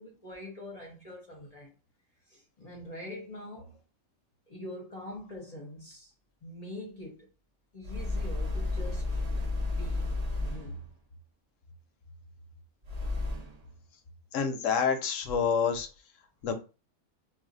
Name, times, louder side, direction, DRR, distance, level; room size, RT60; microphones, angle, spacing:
voice 1, 0.0-1.7 2.3-3.8 4.5-6.1 6.4-7.3 7.7-9.2 9.6-10.9, left 1 dB, 35° left, 0.6 m, -44 dB
sound 1, 7.8-10.9 12.8-13.7, left 2 dB, 75° right, 0.3 m, -32 dB
voice 2, 14.3-15.9 16.4-16.5, left 6 dB, 70° left, 0.9 m, -27 dB
2.4 x 2.3 x 3.7 m
omnidirectional pair, 1.5 m